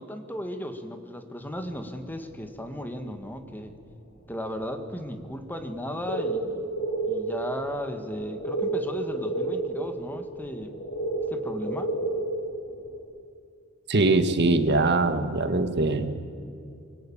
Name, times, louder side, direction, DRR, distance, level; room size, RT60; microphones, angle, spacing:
voice 1, 0.0-3.7 4.3-6.7 7.1-10.8 11.3-11.9, equal, 10° left, 6 dB, 1.8 m, -35 dB
sound 1, 1.4-2.4 2.8-3.2 3.6-3.9 4.3-4.4 4.6-4.7 5.2-13.0, right 2 dB, 60° left, 6.4 m, -32 dB
voice 2, 13.9-16.2, right 2 dB, 55° right, 8 dB, 1.7 m, -22 dB
25.5 x 24.0 x 8.8 m, 2.4 s
head